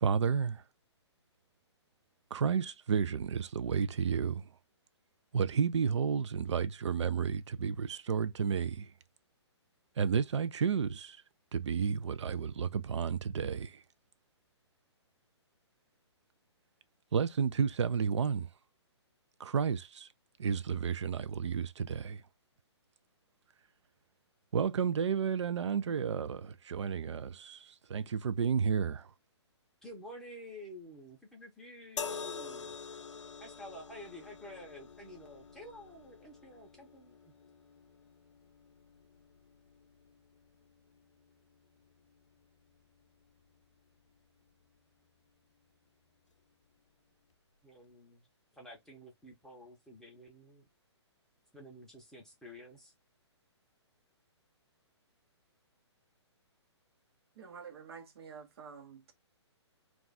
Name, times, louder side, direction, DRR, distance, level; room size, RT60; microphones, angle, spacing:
voice 1, 0.0-0.6 2.3-4.5 5.3-8.9 10.0-11.2 11.5-13.8 17.1-18.5 19.4-20.1 20.4-22.2 24.5-29.1, right 6 dB, 75° right, 0.4 m, -31 dB
voice 2, 29.8-33.0 33.4-37.1 47.6-48.3 48.5-50.7 51.5-52.9, equal, 5° left, 0.6 m, -50 dB
sound 1, 32.0-45.3 46.2-46.4, left 5 dB, 85° left, 0.5 m, -48 dB
voice 3, 57.4-59.1, right 6 dB, 60° right, 0.9 m, -49 dB
2.4 x 2.3 x 3.9 m
hypercardioid pair, 135°, 15 cm